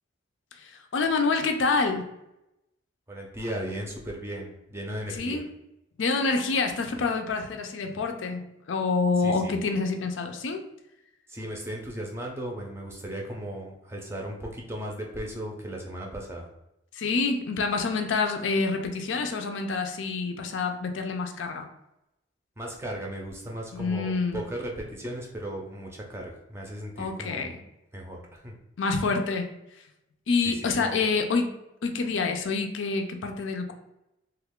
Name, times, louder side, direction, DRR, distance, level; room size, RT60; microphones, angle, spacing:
voice 1, 0.6-2.1 5.1-5.5 6.0-10.6 16.9-21.7 23.7-24.4 27.0-27.5 28.8-29.5 30.3-31.5 31.8-33.7, left 4 dB, 75° left, 5 dB, 0.5 m, -27 dB
voice 2, 3.1-5.4 9.2-9.6 11.3-16.5 22.6-27.5 27.9-28.5 30.6-31.0, right 1 dB, 15° right, -1 dB, 0.5 m, -36 dB
3.1 x 2.3 x 3.5 m, 0.88 s
head